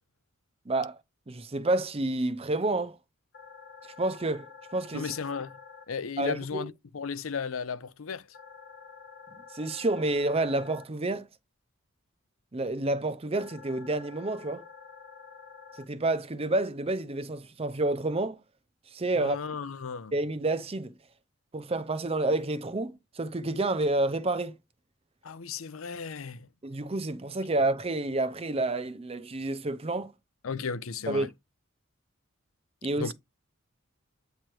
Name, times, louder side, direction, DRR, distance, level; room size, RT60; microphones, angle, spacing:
voice 1, 0.7-1.0 1.3-3.0 4.0-4.5 4.7-5.1 6.2-6.7 9.5-11.3 12.5-14.6 15.8-18.4 18.9-19.4 20.1-20.9 21.5-24.6 26.6-30.1 31.1-31.3 32.8-33.1, right 2 dB, 30° right, 0.6 m, -29 dB
sound 1, 3.3-5.8 8.3-10.8 13.3-15.8, left 6 dB, 50° left, 1.2 m, -49 dB
voice 2, 4.9-5.6 5.9-8.3 19.1-20.1 25.2-26.5 30.4-31.3 33.0-33.1, left 5 dB, 75° left, 0.6 m, -35 dB
8.7 x 3.1 x 4.6 m
head